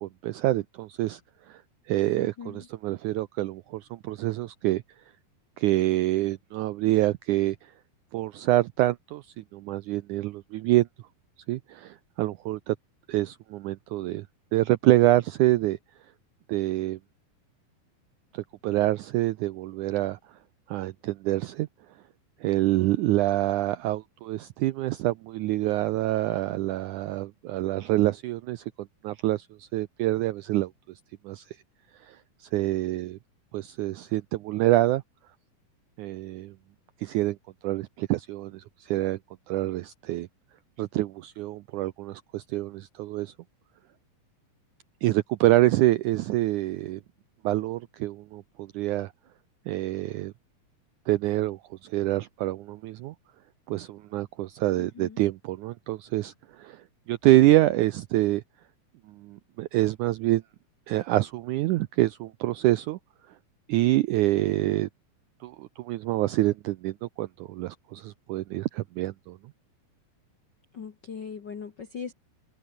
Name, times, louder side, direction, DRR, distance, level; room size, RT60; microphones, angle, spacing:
voice 1, 0.0-1.2 1.5-1.6 1.9-4.8 5.6-7.7 8.1-10.9 11.5-12.8 13.1-14.3 14.5-15.8 16.5-17.0 18.3-20.2 20.7-21.7 22.4-30.7 31.2-31.6 32.0-33.2 33.5-35.0 36.0-36.5 37.0-37.4 37.6-39.2 39.5-40.3 40.8-43.3 45.0-47.0 47.4-49.1 49.7-50.3 51.1-53.1 53.7-58.4 59.1-60.4 60.9-63.0 63.7-64.9 65.4-69.4, right 16 dB, 80° right, 1.8 m, -26 dB
voice 2, 2.2-2.6 54.8-55.2 70.7-72.1, left 6 dB, 55° left, 1.3 m, -40 dB
open air
omnidirectional pair, 4.2 m